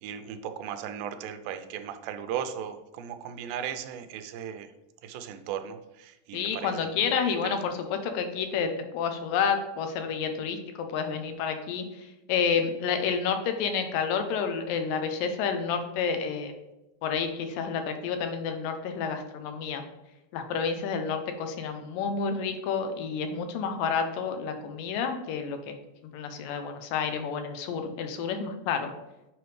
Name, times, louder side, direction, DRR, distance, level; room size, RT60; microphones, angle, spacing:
voice 1, 0.0-4.7 5.0-6.9 7.4-7.6, right 9 dB, 85° right, 8 dB, 2.3 m, -37 dB
voice 2, 6.3-16.5 17.0-19.8 20.3-25.7 26.1-28.9, left 6 dB, 80° left, 7 dB, 2.3 m, -30 dB
7.7 x 5.1 x 3.2 m, 0.95 s
omnidirectional pair, 4.0 m